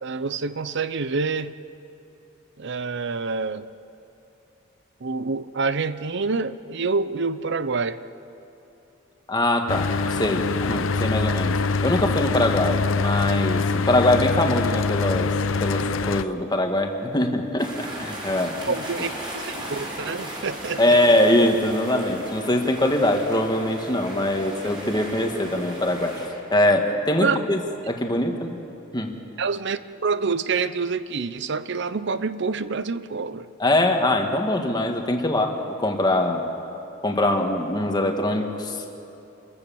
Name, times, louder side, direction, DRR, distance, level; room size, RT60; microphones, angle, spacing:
voice 1, 0.0-1.5 2.6-3.7 5.0-8.0 18.7-21.0 27.2-27.4 29.4-33.5, right 4 dB, 60° right, 14 dB, 0.7 m, -27 dB
voice 2, 9.3-11.6 11.8-15.3 15.6-18.7 20.8-26.1 26.5-27.6 27.9-28.6 28.9-29.1 33.6-35.5 35.8-36.7 37.0-38.9, left 1 dB, 20° left, 3 dB, 1.8 m, -22 dB
Mechanical fan, 9.7-16.2, left 4 dB, 80° left, 0.6 m, -24 dB
sound 1, 17.6-26.3, right 1 dB, 25° right, 5.3 m, -36 dB
28.5 x 15.0 x 7.1 m, 3.0 s
head